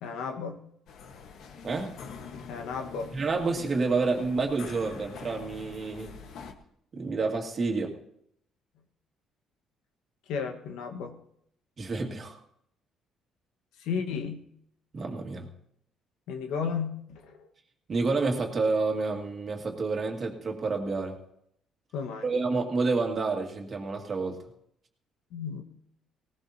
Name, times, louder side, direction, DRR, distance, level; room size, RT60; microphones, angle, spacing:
voice 1, 0.0-0.6 2.5-3.1 10.3-11.2 13.8-14.4 16.3-17.4 21.9-22.3 25.3-25.6, left 6 dB, 85° left, 6 dB, 1.4 m, -33 dB
sound 1, 0.9-6.5, left 5 dB, 70° left, 1.4 m, -44 dB
voice 2, 3.1-6.2 6.9-7.9 11.8-12.4 14.9-15.5 17.9-21.2 22.2-24.4, right 3 dB, 35° right, 2 dB, 2.2 m, -29 dB
18.5 x 18.5 x 2.9 m, 0.71 s
cardioid pair, 120°, 0 cm